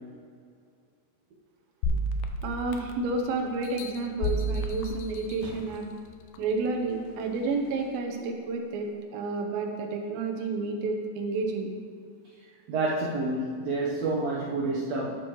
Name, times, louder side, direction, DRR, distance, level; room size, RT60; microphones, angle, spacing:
sound 1, 1.8-3.1 3.6-5.8 6.3-6.4, left 1 dB, 90° left, 2.4 m, -31 dB
voice 1, 2.4-5.8 6.4-11.8, right 3 dB, 90° right, 3 dB, 2.6 m, -30 dB
voice 2, 12.7-15.1, right 2 dB, 70° right, -5 dB, 1.6 m, -28 dB
11.5 x 8.1 x 3.0 m, 2.2 s
omnidirectional pair, 4.1 m